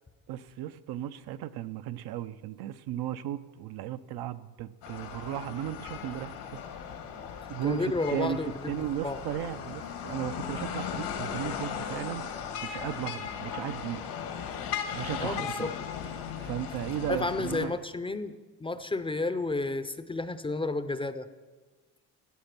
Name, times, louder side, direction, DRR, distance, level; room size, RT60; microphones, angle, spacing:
voice 1, 0.3-6.4 7.5-8.4 8.7-12.2 12.6-14.1 14.9-15.7 16.4-17.7, right 11 dB, 70° right, 12 dB, 0.7 m, -35 dB
sound 1, 4.8-17.7, left 7 dB, 90° left, 2.2 m, -37 dB
voice 2, 7.6-9.2 15.2-15.7 17.1-21.3, left 3 dB, 15° left, 11 dB, 0.5 m, -32 dB
14.0 x 9.5 x 5.9 m, 1.3 s
cardioid pair, 115°, 40 cm